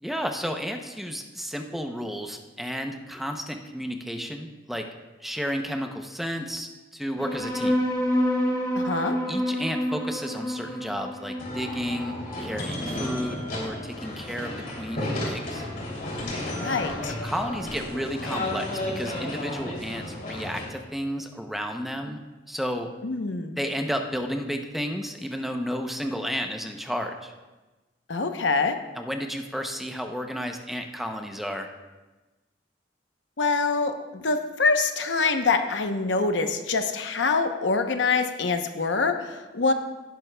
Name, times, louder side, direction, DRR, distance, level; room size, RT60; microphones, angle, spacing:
voice 1, 0.0-4.8 5.2-7.8 9.3-12.1 12.4-15.6 16.6-16.8 17.2-18.7 19.0-22.2 22.5-22.9 23.6-27.3 28.9-31.7, equal, ahead, 4 dB, 0.6 m, -32 dB
sound 1, 7.2-14.1, equal, 20° left, 1.3 m, -29 dB
voice 2, 8.8-9.2 16.6-17.1 23.0-23.6 28.1-28.8 33.4-39.7, left 4 dB, 85° left, 7 dB, 0.8 m, -25 dB
sound 2, 11.4-20.7, left 1 dB, 50° left, 2.9 m, -33 dB
17.0 x 10.5 x 2.3 m, 1.2 s
head